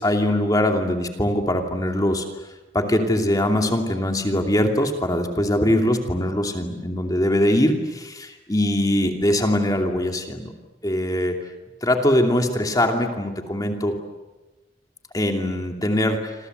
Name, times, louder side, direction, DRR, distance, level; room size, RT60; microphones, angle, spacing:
voice 1, 0.0-2.3 2.7-10.4 10.8-11.4 11.8-14.0 15.1-16.3, left 1 dB, 20° left, 4 dB, 2.7 m, -22 dB
27.5 x 26.5 x 8.0 m, 1.1 s
head